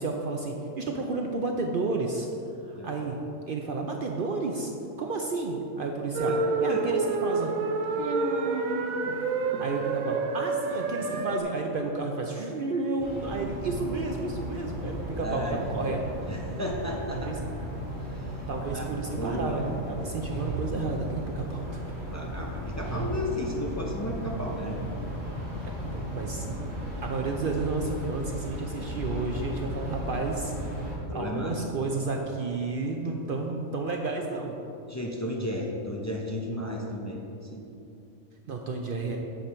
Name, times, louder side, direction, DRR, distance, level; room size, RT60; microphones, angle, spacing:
voice 1, 0.0-2.3 2.7-3.2 3.5-4.7 5.0-7.5 7.9-9.1 9.4-16.0 17.1-17.3 18.5-21.8 25.6-26.5 27.0-30.8 31.1-34.6 38.5-39.2, right 3 dB, 60° right, 1 dB, 0.6 m, -31 dB
sound 1, 6.1-11.4, right 3 dB, 80° right, 1.0 m, -28 dB
voice 2, 6.7-7.0 15.2-16.0 16.3-17.3 18.0-18.5 18.7-19.7 22.1-24.8 25.5-25.6 31.1-31.9 34.9-37.8, left 1 dB, 20° left, -1 dB, 0.4 m, -34 dB
sound 2, 13.0-30.9, right 1 dB, 25° right, 1.7 m, -35 dB
8.9 x 5.3 x 4.3 m, 2.7 s
omnidirectional pair, 1.4 m